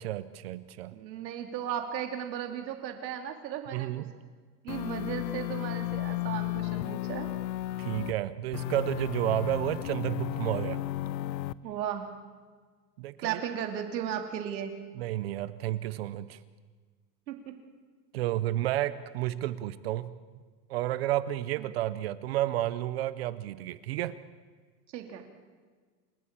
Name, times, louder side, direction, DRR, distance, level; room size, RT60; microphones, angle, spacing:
voice 1, 0.0-0.9 3.7-4.0 7.8-10.8 13.0-13.4 15.0-16.4 18.1-20.1 20.7-24.2, right 14 dB, 40° right, 16 dB, 0.5 m, -31 dB
voice 2, 0.9-4.0 4.6-7.3 11.6-12.1 13.2-14.7 17.3-17.4 21.6-21.7 24.9-25.3, right 9 dB, 85° right, 5 dB, 3.0 m, -35 dB
sound 1, 4.7-8.1 8.5-11.5, left 16 dB, 85° left, 0.9 m, -34 dB
28.5 x 12.5 x 8.8 m, 1.5 s
supercardioid pair, 170°, 50 cm